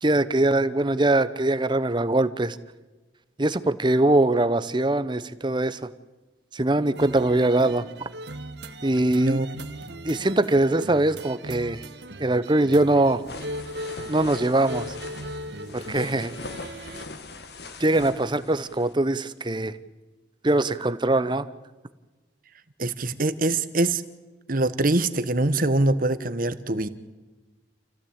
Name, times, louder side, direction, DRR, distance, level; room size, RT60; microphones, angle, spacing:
voice 1, 0.0-2.6 3.4-5.8 6.5-7.9 8.8-9.4 10.0-11.8 12.2-13.2 14.1-14.9 15.7-16.3 17.8-19.8 20.4-21.5, right 2 dB, 25° right, 14 dB, 0.9 m, -22 dB
sound 1, 7.0-17.0, right 1 dB, 65° right, 1.6 m, -38 dB
voice 2, 9.1-9.5 22.8-24.0 24.5-26.9, right 2 dB, 50° right, 13 dB, 1.2 m, -23 dB
sound 2, 13.1-18.9, left 3 dB, 60° left, 1.7 m, -41 dB
28.0 x 16.0 x 8.8 m, 1.2 s
head